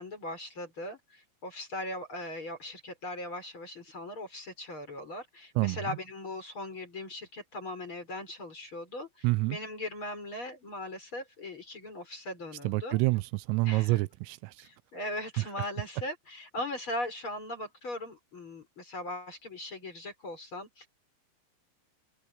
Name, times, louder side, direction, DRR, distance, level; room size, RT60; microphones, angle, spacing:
voice 1, 0.0-13.0 13.6-14.0 14.6-20.9, left 1 dB, 25° left, 5.9 m, -39 dB
voice 2, 9.2-9.6 12.6-14.5, right 21 dB, 85° right, 3.2 m, -27 dB
omnidirectional pair, 5.9 m